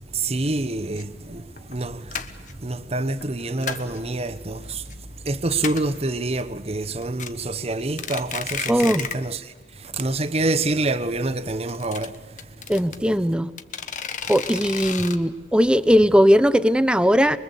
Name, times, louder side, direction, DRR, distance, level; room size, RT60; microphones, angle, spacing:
voice 1, 0.1-2.1 2.6-4.8 5.2-9.5 9.8-12.1, right 2 dB, 35° right, 1.0 m, -26 dB
sound 1, 1.0-1.1 1.6-1.8 2.1-2.5 3.2-4.0 4.4-4.9 5.2-5.3 5.5-6.0 6.4-6.5 6.8-7.3 7.8-9.3 9.6-9.7 10.0-10.1 10.3-10.4 11.5-13.0 13.6-15.2, left 7 dB, 45° left, 1.3 m, -32 dB
voice 2, 8.7-9.0 12.7-13.5 14.3-17.4, equal, 5° right, 0.8 m, -18 dB
24.5 x 22.5 x 8.3 m
head